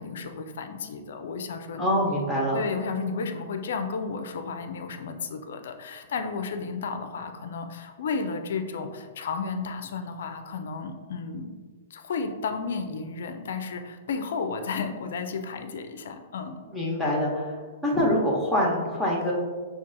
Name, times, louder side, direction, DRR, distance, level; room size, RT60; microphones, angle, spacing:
voice 1, 0.0-2.2 2.5-11.5 11.9-16.6, left 5 dB, 60° left, 6 dB, 0.4 m, -33 dB
voice 2, 1.8-2.6 16.7-17.5 17.8-19.3, equal, ahead, -4 dB, 1.0 m, -25 dB
5.8 x 2.4 x 2.5 m, 1.5 s
figure-of-eight pair, 110°, 0 cm